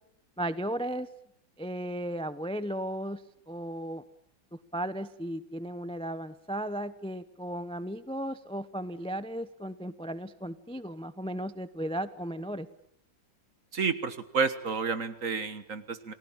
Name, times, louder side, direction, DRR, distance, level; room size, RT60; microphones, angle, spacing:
voice 1, 0.4-1.1 1.6-3.2 3.5-4.0 4.7-12.7, right 1 dB, 5° left, 14 dB, 0.4 m, -35 dB
voice 2, 13.7-16.1, right 5 dB, 45° right, 13 dB, 1.8 m, -30 dB
30.0 x 20.0 x 9.0 m, 0.70 s
omnidirectional pair, 2.0 m